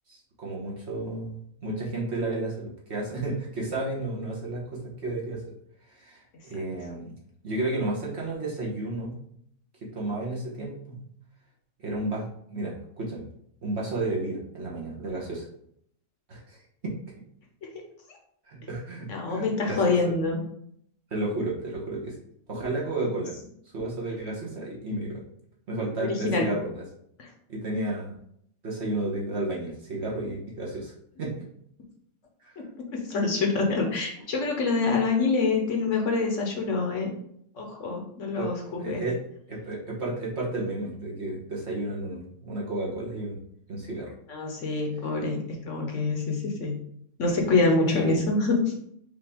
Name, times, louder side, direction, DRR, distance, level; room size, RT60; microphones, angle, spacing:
voice 1, 0.1-5.4 5.9-7.1 7.4-9.2 9.9-11.0 11.8-13.3 13.6-15.5 16.3-16.9 18.5-20.1 21.1-22.1 22.5-23.3 23.7-25.2 25.7-26.8 27.5-28.1 28.6-31.4 32.4-32.6 38.4-39.2 39.5-43.4 43.7-44.1 47.9-48.3, right 2 dB, 50° right, -4 dB, 1.4 m, -32 dB
voice 2, 19.1-20.4 26.0-26.5 27.2-27.3 32.6-32.7 32.9-37.1 37.5-39.0 44.3-46.8 47.2-48.7, left 3 dB, 60° left, 1 dB, 1.1 m, -26 dB
5.2 x 2.8 x 3.5 m, 0.69 s
omnidirectional pair, 1.5 m